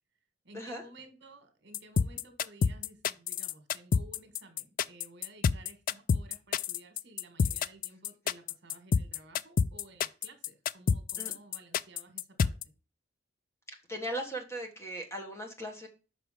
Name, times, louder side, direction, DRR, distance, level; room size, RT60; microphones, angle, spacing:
voice 1, 0.4-12.7, right 2 dB, 60° right, 7 dB, 1.6 m, -55 dB
sound 1, 1.7-12.6, left 6 dB, 45° left, 0.3 m, -28 dB
voice 2, 13.9-15.9, equal, 15° left, 3 dB, 1.3 m, -38 dB
5.9 x 5.0 x 5.1 m, 0.32 s
head